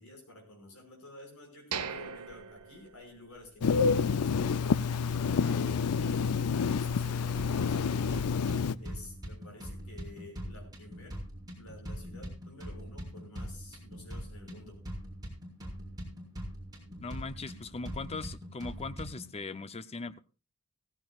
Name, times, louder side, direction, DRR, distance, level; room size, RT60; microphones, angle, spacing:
voice 1, 0.0-4.6 5.1-8.5 8.8-11.2 11.6-14.8, left 2 dB, 70° left, 5.5 m, -51 dB
sound 1, 1.7-3.6 4.0-4.1 4.6-4.8, right 7 dB, 85° right, 1.0 m, -40 dB
Telephone, 3.6-8.7, left 5 dB, 90° left, 0.5 m, -28 dB
sound 2, 7.4-19.4, equal, 15° right, 4.5 m, -43 dB
voice 2, 17.0-20.2, left 3 dB, 25° left, 0.6 m, -39 dB
16.0 x 15.5 x 2.4 m
head